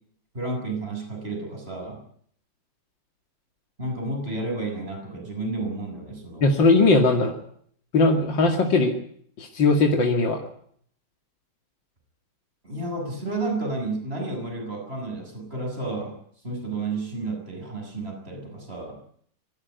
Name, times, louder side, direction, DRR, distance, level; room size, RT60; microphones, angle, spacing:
voice 1, 0.3-2.0 3.8-6.5 12.6-16.2 16.4-19.0, right 2 dB, 30° right, 2 dB, 7.4 m, -31 dB
voice 2, 6.4-7.3 7.9-8.9 9.4-10.4, left 3 dB, 90° left, 3 dB, 3.1 m, -19 dB
25.0 x 15.5 x 9.6 m, 0.63 s
omnidirectional pair, 2.0 m